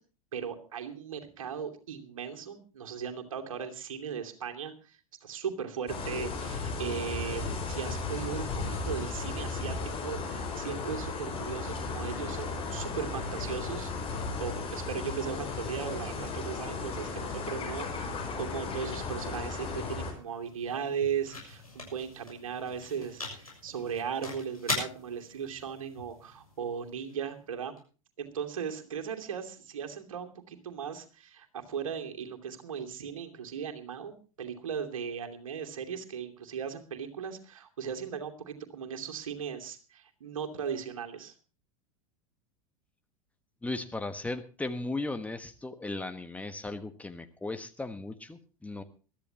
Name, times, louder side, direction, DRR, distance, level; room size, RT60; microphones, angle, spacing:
voice 1, 0.3-9.8 10.0-13.9 14.4-27.7 28.2-41.3, right 7 dB, 65° right, 4 dB, 2.8 m, -37 dB
sound 1, 5.9-20.1, left 4 dB, 30° left, 5.5 m, -35 dB
sound 2, 19.9-27.8, left 2 dB, 85° left, 6.9 m, -41 dB
voice 2, 43.6-48.8, left 2 dB, 10° left, 8 dB, 1.3 m, -36 dB
22.5 x 13.5 x 2.9 m, 0.36 s
figure-of-eight pair, 85°, 18 cm